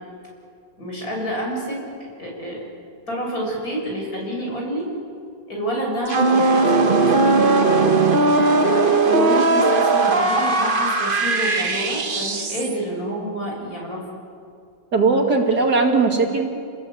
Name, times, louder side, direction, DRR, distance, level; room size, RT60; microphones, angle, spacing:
voice 1, 0.8-2.6 3.1-4.9 5.5-8.0 9.0-14.0, right 1 dB, 50° left, -1 dB, 7.3 m, -28 dB
sound 1, 6.1-12.8, right 3 dB, 35° right, 1.2 m, -18 dB
voice 2, 14.9-16.7, right 4 dB, 55° right, 2 dB, 2.8 m, -19 dB
28.5 x 20.0 x 8.6 m, 2.4 s
omnidirectional pair, 2.0 m